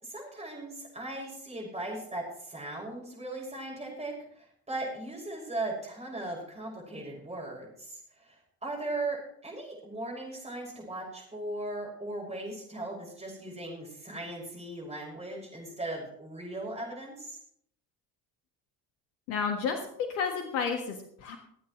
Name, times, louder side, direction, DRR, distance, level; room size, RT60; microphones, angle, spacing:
voice 1, 0.0-17.4, right 2 dB, 15° right, -3 dB, 5.9 m, -38 dB
voice 2, 19.3-19.8 20.1-21.4, left 6 dB, 70° left, 3 dB, 1.7 m, -31 dB
24.5 x 8.6 x 3.1 m, 0.68 s
hypercardioid pair, 55°, 49 cm